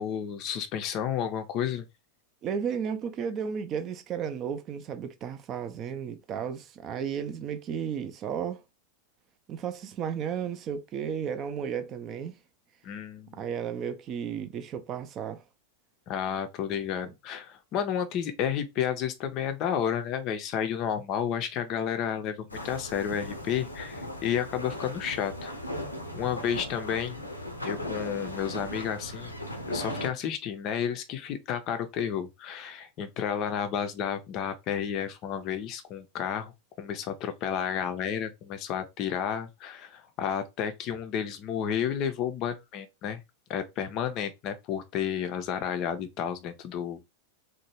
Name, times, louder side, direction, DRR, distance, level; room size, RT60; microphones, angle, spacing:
voice 1, 0.0-1.8 12.8-13.4 16.1-25.5 26.1-27.2 27.6-29.3 29.7-43.2 43.5-47.0, left 8 dB, 40° left, 0.5 m, -31 dB
voice 2, 2.4-8.6 9.5-12.4 13.4-15.4 17.0-17.1, right 7 dB, 30° right, 0.4 m, -33 dB
sound 1, 22.5-30.1, equal, 85° left, 0.5 m, -37 dB
3.0 x 2.1 x 3.0 m
figure-of-eight pair, 90°, 0 cm